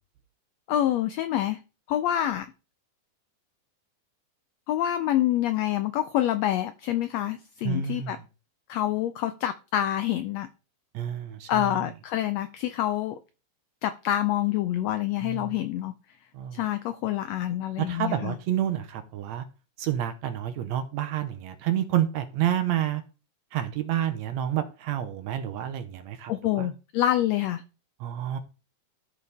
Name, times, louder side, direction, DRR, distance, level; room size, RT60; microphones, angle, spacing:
voice 1, 0.7-1.6 1.9-2.5 4.7-8.2 8.7-10.5 11.5-13.2 13.8-15.9 16.5-18.4 26.3-27.6, left 12 dB, 85° left, 11 dB, 1.5 m, -27 dB
voice 2, 7.6-8.2 10.9-11.8 15.2-15.6 16.3-16.6 17.8-19.5 19.8-23.0 23.5-26.7 28.0-28.4, right 11 dB, 75° right, 9 dB, 1.9 m, -29 dB
13.5 x 4.8 x 3.5 m, 0.32 s
omnidirectional pair, 3.6 m